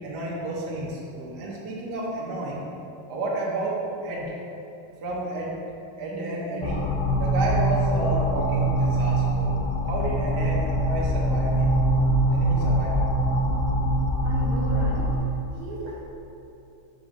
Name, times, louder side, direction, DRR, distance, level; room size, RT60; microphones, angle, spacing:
voice 1, 0.0-2.6 3.1-4.3 5.0-5.5 6.0-6.9 7.2-9.5 9.9-11.8 12.3-13.1, right 2 dB, 60° right, -4 dB, 1.3 m, -31 dB
Piano, 6.1-13.4, left 1 dB, 5° left, 0.4 m, -41 dB
sound 1, 6.6-15.2, right 1 dB, 80° left, 1.5 m, -23 dB
voice 2, 14.2-16.0, right 1 dB, 90° right, -6 dB, 2.2 m, -36 dB
5.2 x 3.7 x 4.8 m, 2.8 s
omnidirectional pair, 2.3 m